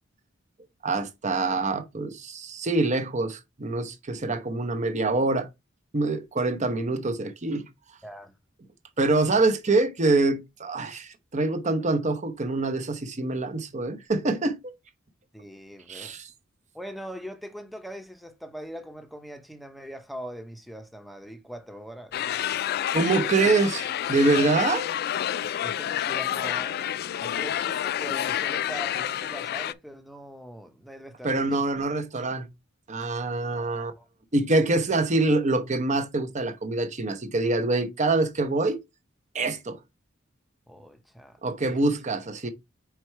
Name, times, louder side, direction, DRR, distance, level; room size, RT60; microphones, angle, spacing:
voice 1, 0.8-5.5 5.9-7.6 9.0-14.7 15.9-16.3 22.9-24.9 31.2-32.5 32.9-33.9 34.3-38.8 39.3-39.8 41.4-42.5, right 2 dB, 40° right, 0.8 m, -25 dB
voice 2, 8.0-8.3 15.3-16.1 16.7-22.1 25.6-26.8 27.2-31.7 33.5-34.1 40.7-41.8, equal, ahead, 0.8 m, -41 dB
sound 1, 22.1-29.7, left 10 dB, 50° left, 0.3 m, -29 dB
4.7 x 4.5 x 4.6 m
head